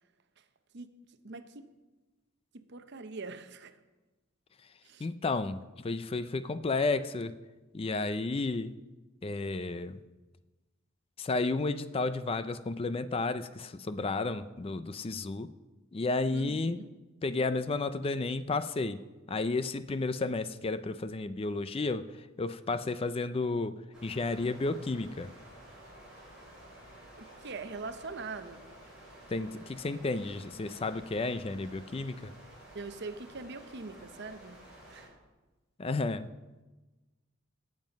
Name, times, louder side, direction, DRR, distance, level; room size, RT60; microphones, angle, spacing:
voice 1, 1.2-1.7 2.5-3.7 4.8-5.1 16.3-16.9 27.2-28.7 32.7-34.6 34.9-35.1, right 3 dB, 55° right, 10 dB, 0.8 m, -42 dB
voice 2, 5.0-7.4 7.7-8.7 9.2-10.0 11.2-15.5 15.9-16.8 17.2-23.8 24.0-25.3 29.3-32.3 35.8-36.3, left 3 dB, 25° left, 13 dB, 0.4 m, -32 dB
sound 1, 23.9-35.1, right 1 dB, 5° right, 5.4 m, -52 dB
18.0 x 7.5 x 5.2 m, 1.2 s
head